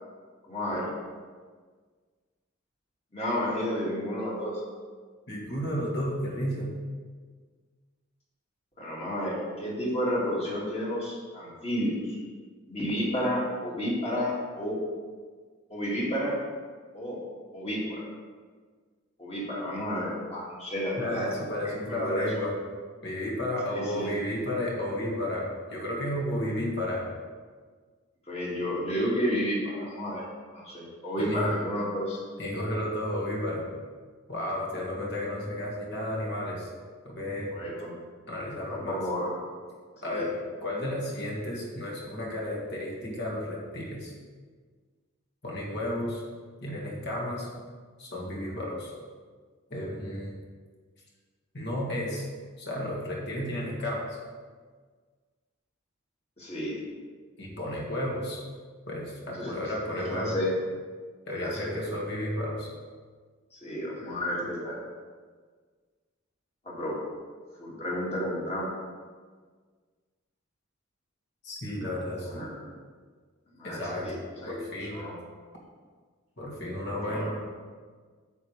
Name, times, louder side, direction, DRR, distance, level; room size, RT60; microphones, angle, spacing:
voice 1, 0.5-0.9 3.1-4.5 8.8-12.2 12.7-14.8 15.7-16.4 16.9-17.2 17.5-18.0 19.2-21.3 21.6-22.3 23.7-24.1 28.3-30.3 30.5-32.2 37.5-37.9 38.7-39.4 40.1-40.2 56.4-56.8 59.3-60.5 61.3-61.7 63.5-64.8 66.6-67.0 67.6-68.7 72.2-72.5 73.5-74.6 74.9-75.2 76.9-77.3, equal, 30° left, -5 dB, 2.3 m, -31 dB
voice 2, 5.3-6.7 21.0-22.5 23.0-27.1 31.2-31.5 32.4-33.7 34.3-36.7 37.0-37.5 38.3-39.0 40.0-44.1 45.4-46.2 46.6-47.5 48.0-48.9 49.7-50.4 51.5-52.3 52.6-54.2 57.4-58.4 58.9-60.4 61.3-62.7 71.4-72.5 73.6-74.1 74.5-75.0 76.4-77.4, left 1 dB, 55° left, -3 dB, 2.0 m, -32 dB
9.3 x 7.5 x 3.3 m, 1.5 s
head